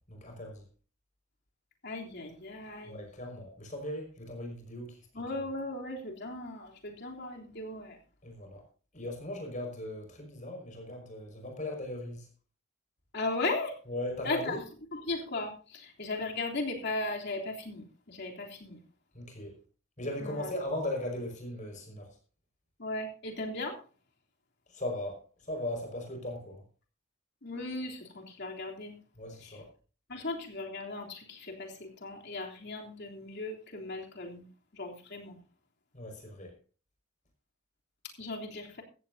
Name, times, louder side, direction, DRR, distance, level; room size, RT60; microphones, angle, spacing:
voice 1, 0.1-0.6 2.8-5.0 8.2-8.6 8.9-12.3 13.9-14.6 19.1-19.5 20.0-22.1 24.7-26.6 29.2-29.7 35.9-36.5, left 1 dB, 35° left, 3 dB, 5.6 m, -38 dB
voice 2, 1.8-3.0 5.1-8.0 13.1-13.8 14.2-14.6 14.9-18.8 20.2-20.5 22.8-23.8 27.4-29.0 29.4-29.6 30.1-34.5 34.7-35.4 38.2-38.8, left 2 dB, 55° left, 1 dB, 3.3 m, -37 dB
16.0 x 14.5 x 2.8 m, 0.36 s
head